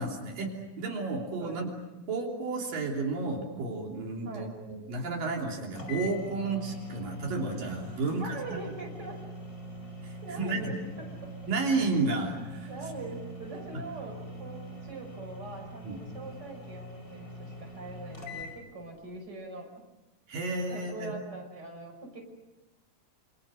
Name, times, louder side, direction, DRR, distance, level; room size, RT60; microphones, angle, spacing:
voice 1, 0.0-1.7 2.1-8.4 10.0-10.6 11.5-12.7 15.8-16.0 20.3-21.1, right 3 dB, 80° right, 0 dB, 4.9 m, -32 dB
sound 1, 5.4-5.5 5.8-18.6, equal, 25° left, 5.0 m, -43 dB
voice 2, 8.1-9.3 10.2-10.7 12.7-19.7 20.7-22.2, right 2 dB, 30° right, 2 dB, 5.9 m, -42 dB
28.0 x 27.0 x 6.5 m, 1.0 s
omnidirectional pair, 3.9 m